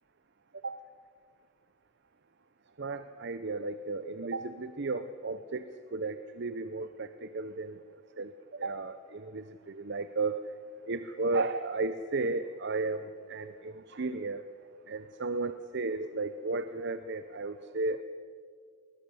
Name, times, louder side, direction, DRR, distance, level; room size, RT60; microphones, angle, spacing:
voice 1, 2.8-5.7 5.9-7.8 8.2-10.4 10.9-14.5 14.9-18.0, right 3 dB, 55° right, 12 dB, 0.7 m, -34 dB
22.0 x 20.5 x 7.0 m, 2.2 s
head